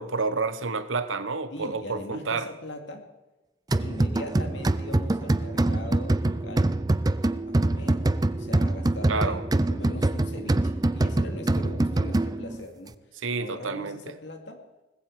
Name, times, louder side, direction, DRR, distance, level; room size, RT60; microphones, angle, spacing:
voice 1, 0.0-2.5 9.1-9.4 13.2-14.2, right 4 dB, 85° right, 1.0 m, -29 dB
voice 2, 1.5-3.0 3.8-6.8 7.6-14.6, left 1 dB, 65° left, 2.4 m, -40 dB
sound 1, 3.7-12.6, right 2 dB, 20° right, 0.5 m, -25 dB
19.5 x 15.0 x 4.8 m
head